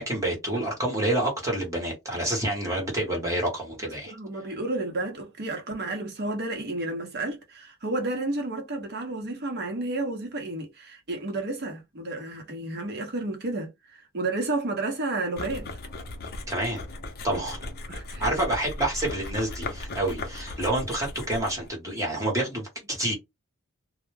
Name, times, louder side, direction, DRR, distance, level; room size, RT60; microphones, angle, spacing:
voice 1, 0.0-4.1 16.5-16.8 17.2-17.6 18.2-23.1, right 1 dB, 15° right, 1.0 m, -28 dB
voice 2, 3.8-15.7 17.3-17.4 17.9-18.3, right 2 dB, 50° right, 0.8 m, -31 dB
sound 1, 15.4-21.7, left 2 dB, 45° left, 0.6 m, -37 dB
2.1 x 2.0 x 3.2 m
head